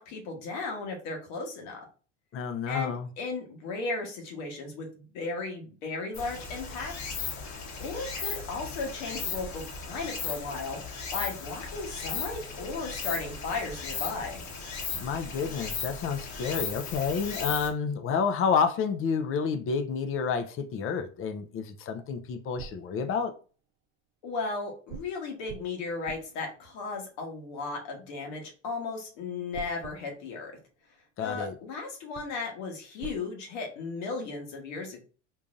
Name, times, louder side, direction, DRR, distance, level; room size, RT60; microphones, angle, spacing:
voice 1, 0.0-1.9 2.7-7.1 7.8-10.8 11.1-14.4 24.2-30.5 31.2-35.0, left 4 dB, 75° left, 1.3 m, -35 dB
voice 2, 2.3-3.1 14.9-23.3 31.2-31.5, left 6 dB, 40° left, 0.6 m, -29 dB
Stream, 6.1-17.7, left 5 dB, 55° left, 1.2 m, -37 dB
sound 1, 22.2-23.7 24.9-28.2 29.5-31.4 31.8-31.9 32.1-33.2, right 8 dB, 60° right, 0.7 m, -49 dB
3.8 x 2.7 x 2.5 m
supercardioid pair, 90°, 34 cm